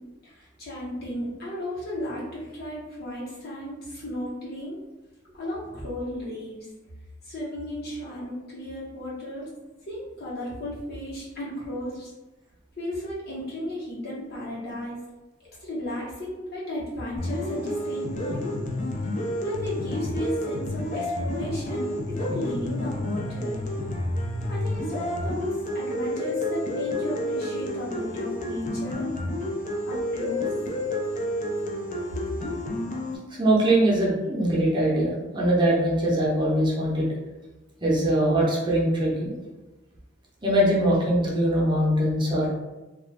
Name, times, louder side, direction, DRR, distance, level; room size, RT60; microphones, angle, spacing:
voice 1, 0.2-4.8 5.3-6.6 7.2-9.5 9.9-12.1 12.8-15.0 15.6-18.5 19.4-23.6 24.5-29.1 29.8-30.5, left 1 dB, 55° left, -7 dB, 1.1 m, -34 dB
sound 1, 17.2-33.2, left 1 dB, 40° left, 0.4 m, -30 dB
voice 2, 33.3-37.1 37.8-39.4 40.4-42.5, right 1 dB, 25° right, -4 dB, 0.7 m, -22 dB
2.4 x 2.3 x 3.2 m, 1.1 s
head